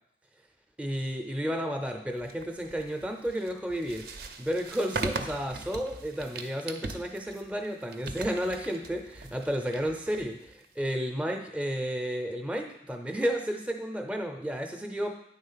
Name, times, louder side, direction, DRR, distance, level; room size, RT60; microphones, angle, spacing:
voice 1, 0.8-4.1 4.4-15.1, equal, 5° right, 4 dB, 0.5 m, -32 dB
sound 1, 2.2-10.9, right 3 dB, 55° right, 0.5 m, -40 dB
8.9 x 3.8 x 5.6 m, 0.76 s
head